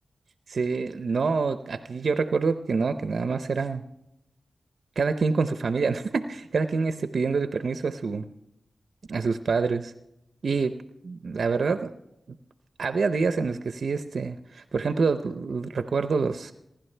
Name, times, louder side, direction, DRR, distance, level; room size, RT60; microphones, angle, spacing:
voice 1, 0.5-3.8 5.0-8.3 9.1-9.9 10.4-10.7 11.0-11.9 12.8-16.5, right 4 dB, 75° right, 9 dB, 0.7 m, -26 dB
28.5 x 11.5 x 3.3 m, 0.83 s
cardioid pair, 50°, 0 cm